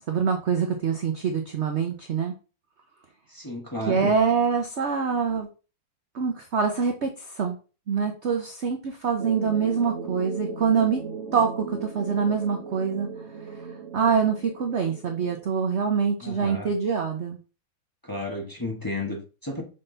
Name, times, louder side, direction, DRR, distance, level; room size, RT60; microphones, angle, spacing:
voice 1, 0.1-2.3 3.9-5.5 6.1-7.1 7.4-7.6 7.9-11.0 11.3-13.1 13.9-17.4, right 6 dB, 60° right, 4 dB, 0.7 m, -25 dB
voice 2, 3.3-4.1 16.2-16.7 18.0-19.6, left 2 dB, 15° left, 0 dB, 1.1 m, -33 dB
sound 1, 9.2-15.4, right 5 dB, 40° right, 1.4 m, -37 dB
6.6 x 3.8 x 3.9 m, 0.34 s
omnidirectional pair, 2.1 m